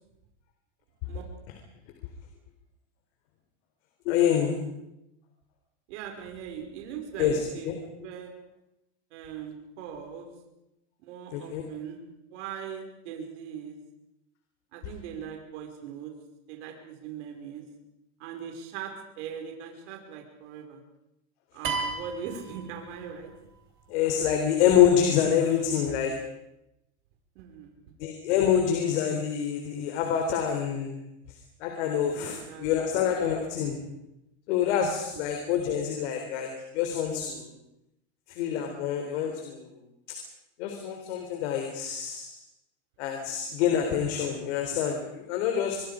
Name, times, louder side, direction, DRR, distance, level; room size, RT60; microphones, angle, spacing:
voice 1, 4.1-4.6 7.2-7.8 11.3-11.6 23.9-26.1 28.0-30.9 31.6-33.8 34.5-37.5 38.3-39.7 40.6-42.3 43.0-45.8, left 9 dB, 70° left, 4 dB, 3.9 m, -26 dB
voice 2, 5.9-7.7 8.0-8.3 9.1-10.3 11.0-12.0 12.3-13.7 14.7-16.1 16.5-17.6 18.2-20.8 21.5-23.3 27.4-27.8 32.2-33.0 35.1-35.2, right 8 dB, 70° right, 2 dB, 5.5 m, -40 dB
sound 1, 21.6-23.3, right 4 dB, 35° right, 4.1 m, -34 dB
25.0 x 24.0 x 5.1 m, 0.87 s
supercardioid pair, 145°, 36 cm